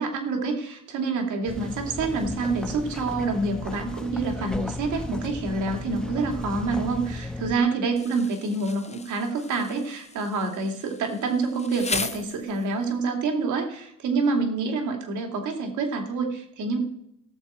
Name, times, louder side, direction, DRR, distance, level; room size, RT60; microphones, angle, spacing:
voice 1, 0.0-16.8, right 3 dB, 75° right, 4 dB, 2.7 m, -27 dB
sound 1, 1.5-7.6, left 1 dB, ahead, 1.1 m, -35 dB
Insect, 8.0-12.9, left 4 dB, 20° left, 0.8 m, -37 dB
17.0 x 7.4 x 4.4 m, 0.74 s
cardioid pair, 90°, 30 cm